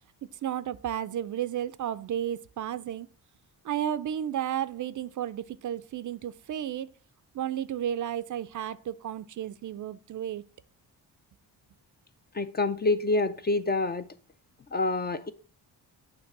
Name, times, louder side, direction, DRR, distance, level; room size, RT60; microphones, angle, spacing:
voice 1, 0.4-3.1 3.6-6.9 7.3-10.4, right 10 dB, 50° right, 0.5 m, -33 dB
voice 2, 12.3-14.1 14.7-15.3, left 2 dB, 25° left, 0.4 m, -27 dB
8.7 x 3.2 x 5.9 m
cardioid pair, 90°, 40 cm